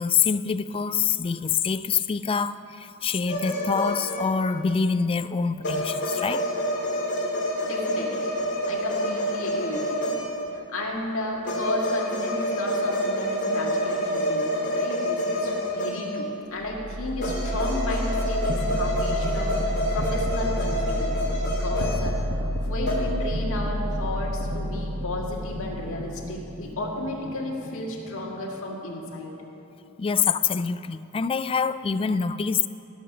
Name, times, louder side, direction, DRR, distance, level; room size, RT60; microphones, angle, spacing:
voice 1, 0.0-6.4 30.0-32.7, left 6 dB, 25° left, 14 dB, 0.3 m, -25 dB
sound 1, 3.3-4.6 5.6-10.5 11.4-16.4 17.2-22.5 22.8-22.9, equal, 50° left, 3.4 m, -28 dB
voice 2, 7.6-8.3 8.7-10.1 10.5-21.2 21.5-29.4, left 1 dB, 65° left, -2 dB, 1.9 m, -33 dB
sound 2, 16.6-28.5, equal, 55° right, 1.2 m, -30 dB
17.5 x 7.1 x 6.1 m, 3.0 s
head